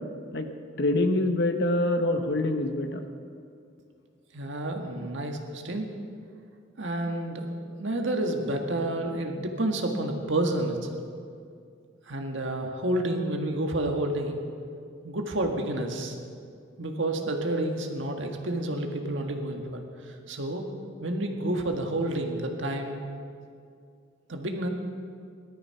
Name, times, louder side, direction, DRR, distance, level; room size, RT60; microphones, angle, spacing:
voice 1, 0.8-3.0, left 1 dB, 60° left, 6 dB, 1.2 m, -25 dB
voice 2, 4.3-5.9 6.8-10.8 12.1-14.4 15.0-16.2 16.8-20.7 21.0-23.0 24.3-24.7, right 1 dB, 70° right, 3 dB, 1.7 m, -30 dB
19.0 x 12.5 x 5.8 m, 2.4 s
head